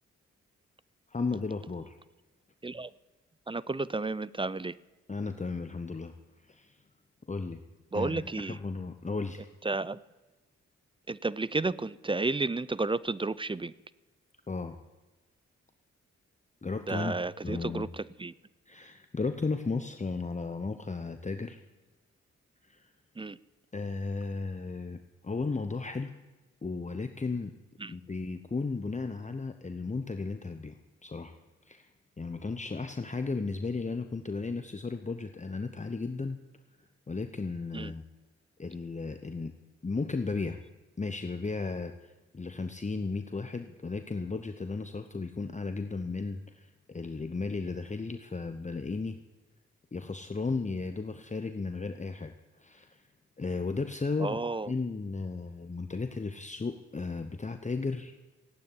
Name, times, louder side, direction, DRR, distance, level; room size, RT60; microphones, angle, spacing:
voice 1, 1.1-2.0 5.1-6.1 6.5-6.8 7.3-7.6 7.9-9.5 14.5-14.8 16.6-17.2 17.4-17.9 18.7-21.6 22.7-22.8 23.7-25.0 25.2-26.1 26.6-27.5 27.9-30.7 31.0-31.4 31.7-31.9 32.2-36.4 37.1-38.0 38.6-39.5 39.8-40.6 41.0-49.2 49.9-52.3 52.6-53.0 53.4-54.4 54.7-58.2, left 4 dB, 25° left, 7 dB, 1.0 m, -35 dB
voice 2, 3.5-4.8 7.9-8.6 9.6-10.0 11.1-13.7 16.9-18.3 23.2-23.4 27.8-27.9 37.7-37.9 54.2-54.7, right 3 dB, 15° right, 19 dB, 0.6 m, -32 dB
15.5 x 8.7 x 9.8 m, 1.1 s
supercardioid pair, 45°, 30 cm